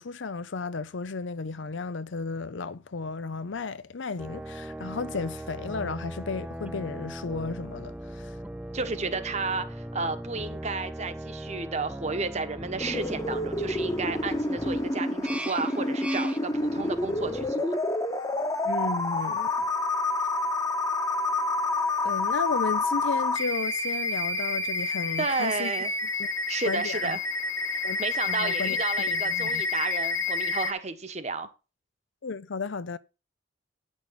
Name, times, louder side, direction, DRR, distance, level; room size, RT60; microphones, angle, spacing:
voice 1, 0.0-8.3 18.6-19.7 22.0-25.7 26.2-26.3 26.6-27.2 27.8-28.0 28.3-29.6 32.2-33.0, left 4 dB, 75° left, 0.6 m, -34 dB
sound 1, 4.2-17.5, right 1 dB, 5° right, 0.4 m, -39 dB
voice 2, 8.7-17.8 25.2-25.9 26.5-27.2 28.0-31.5, right 4 dB, 35° right, 1.1 m, -32 dB
sound 2, 12.8-30.7, left 2 dB, 20° left, 1.0 m, -28 dB
9.8 x 6.4 x 5.7 m
head